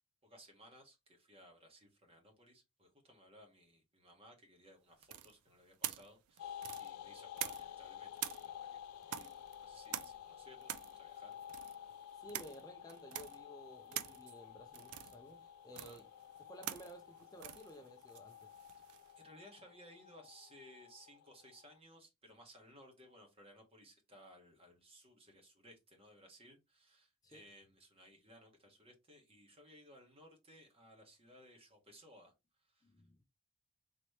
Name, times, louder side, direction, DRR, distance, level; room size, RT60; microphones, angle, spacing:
voice 1, 0.2-11.9 15.7-16.0 19.1-32.3 32.6-32.9, equal, 25° right, 1.3 m, -60 dB
sound 1, 5.0-7.8 8.2-19.1, right 12 dB, 75° right, 0.4 m, -46 dB
sound 2, 6.4-21.8, left 10 dB, 80° left, 0.3 m, -52 dB
voice 2, 12.2-16.0 16.4-18.6 27.2-27.5 32.8-33.2, equal, 15° left, 0.5 m, -55 dB
4.0 x 3.0 x 3.2 m
head